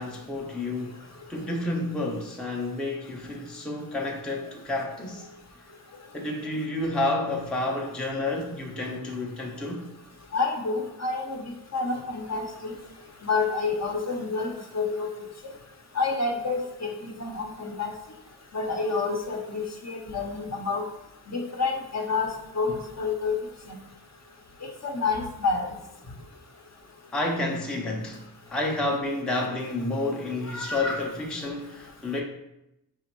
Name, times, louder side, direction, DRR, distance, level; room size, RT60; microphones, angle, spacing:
voice 1, 0.0-5.3 6.1-9.9 27.1-28.2 28.5-32.2, left 2 dB, ahead, -1 dB, 0.5 m, -30 dB
voice 2, 10.3-11.4 11.7-12.7 13.2-15.1 15.9-17.9 18.5-20.8 21.3-23.3 23.7-23.8 24.6-25.6 30.5-31.0, left 4 dB, 40° left, 2 dB, 0.7 m, -29 dB
5.1 x 2.4 x 3.0 m, 0.87 s
wide cardioid pair, 80°, 41 cm